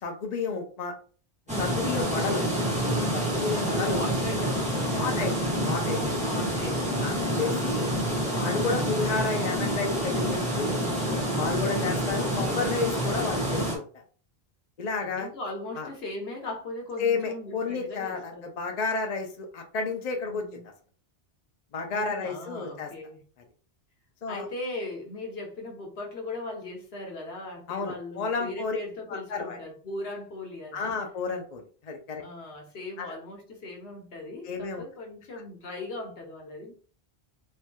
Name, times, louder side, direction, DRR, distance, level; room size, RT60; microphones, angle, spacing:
voice 1, 0.0-0.9 1.6-2.4 3.1-4.1 5.0-5.3 5.6-6.2 7.0-7.9 8.3-10.9 11.3-14.0 14.8-15.3 15.8-15.9 17.0-20.6 21.7-22.9 24.2-24.5 27.7-28.8 29.1-29.6 30.7-32.2 33.0-33.1 34.4-34.8, left 4 dB, 50° left, 3 dB, 0.6 m, -31 dB
sound 1, 1.5-13.8, equal, 5° right, 1.1 m, -28 dB
voice 2, 3.4-5.4 6.2-7.4 11.5-12.1 15.0-18.5 20.2-20.6 21.9-23.2 24.3-31.0 32.2-36.7, left 2 dB, 75° left, 1 dB, 1.1 m, -39 dB
3.2 x 2.8 x 2.2 m, 0.41 s
omnidirectional pair, 1.1 m